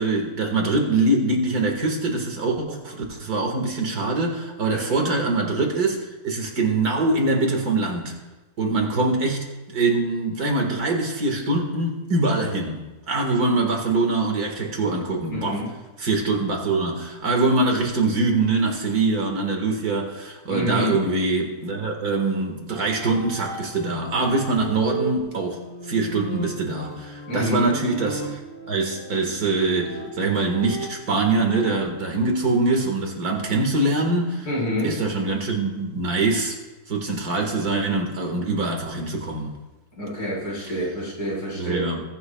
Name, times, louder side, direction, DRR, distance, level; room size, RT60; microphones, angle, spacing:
voice 1, 0.0-8.1 8.6-12.8 13.1-15.6 16.0-25.6 25.9-28.4 28.7-34.5 34.8-36.6 36.9-39.5 41.5-42.0, right 3 dB, 70° right, 2 dB, 2.3 m, -23 dB
voice 2, 4.7-5.1 15.3-15.7 20.5-21.0 27.3-27.7 34.5-35.0 40.0-41.9, left 1 dB, 80° left, -6 dB, 4.7 m, -27 dB
sound 1, 22.7-31.9, right 2 dB, 45° right, 4.4 m, -36 dB
20.5 x 9.5 x 2.3 m, 1.1 s
omnidirectional pair, 1.7 m